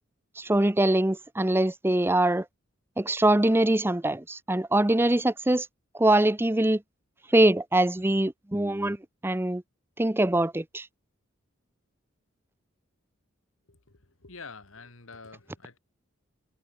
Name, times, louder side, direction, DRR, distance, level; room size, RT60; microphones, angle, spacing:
voice 1, 0.4-2.4 3.0-5.7 5.9-6.8 7.3-9.0 9.2-9.6 10.0-10.9, right 1 dB, 10° right, 0.6 m, -23 dB
voice 2, 13.7-15.8, left 4 dB, 90° left, 2.5 m, -47 dB
head